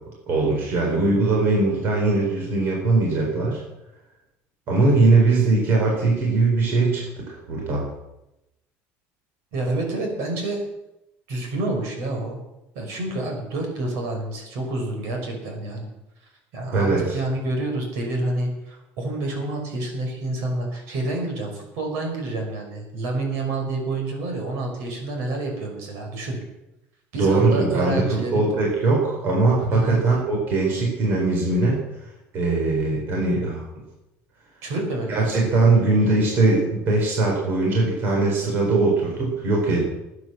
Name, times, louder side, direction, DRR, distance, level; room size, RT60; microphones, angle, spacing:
voice 1, 0.3-3.6 4.7-7.9 16.7-17.2 27.1-31.8 32.3-33.6 35.1-39.8, right 3 dB, 40° right, -1 dB, 4.4 m, -20 dB
voice 2, 9.5-10.6 11.3-12.4 12.7-15.9 16.5-26.4 27.1-28.6 29.6-30.0 34.6-35.4, right 2 dB, 65° right, 2 dB, 5.7 m, -28 dB
17.5 x 9.7 x 7.5 m, 0.93 s
cardioid pair, 175°, 5 cm